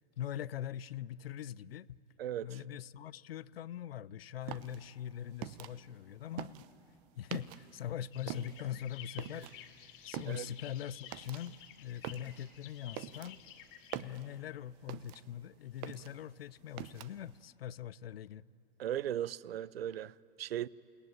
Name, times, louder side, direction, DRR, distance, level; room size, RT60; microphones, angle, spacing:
voice 1, 0.2-2.0 2.4-6.7 7.2-9.5 10.0-13.4 13.9-18.4, left 10 dB, 80° left, 0.6 m, -42 dB
voice 2, 2.2-2.6 10.3-10.5 18.8-20.7, right 11 dB, 80° right, 0.6 m, -37 dB
sound 1, 4.4-7.9 8.2-15.4 15.7-17.4, right 14 dB, 50° right, 0.9 m, -46 dB
sound 2, 8.1-14.0, left 11 dB, 65° left, 2.6 m, -53 dB
28.5 x 18.5 x 9.1 m
hypercardioid pair, 95°, 30 cm